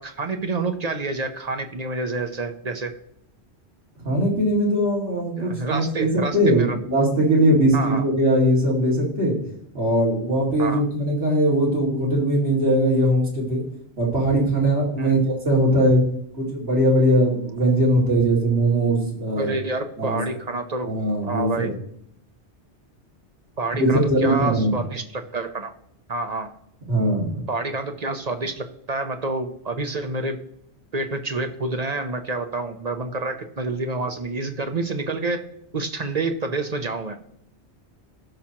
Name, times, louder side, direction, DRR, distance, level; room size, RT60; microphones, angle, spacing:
voice 1, 0.0-2.9 5.4-6.8 7.7-8.1 10.6-10.8 15.0-15.3 19.4-20.9 21.2-21.7 23.6-25.7 26.1-26.5 27.5-30.4 30.9-37.2, right 3 dB, 40° right, 6 dB, 0.8 m, -28 dB
voice 2, 4.0-9.4 9.7-13.6 14.0-16.0 16.3-19.5 20.0-20.2 20.8-21.7 23.7-24.8 26.9-27.4, right 1 dB, 70° right, -3 dB, 2.7 m, -20 dB
16.5 x 5.9 x 2.9 m, 0.72 s
omnidirectional pair, 1.1 m